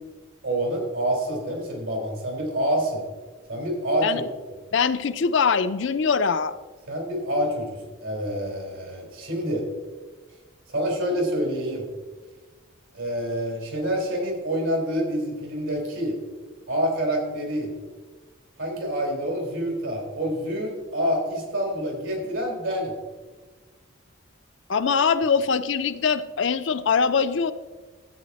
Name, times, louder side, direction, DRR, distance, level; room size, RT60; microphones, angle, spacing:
voice 1, 0.4-3.0 3.5-4.2 6.9-9.7 10.7-11.9 12.9-16.1 16.7-17.7 18.6-22.9, equal, 80° right, 1 dB, 3.9 m, -27 dB
voice 2, 4.7-6.5 24.7-27.5, left 5 dB, 65° left, 11 dB, 0.5 m, -22 dB
13.5 x 8.6 x 4.2 m, 1.3 s
head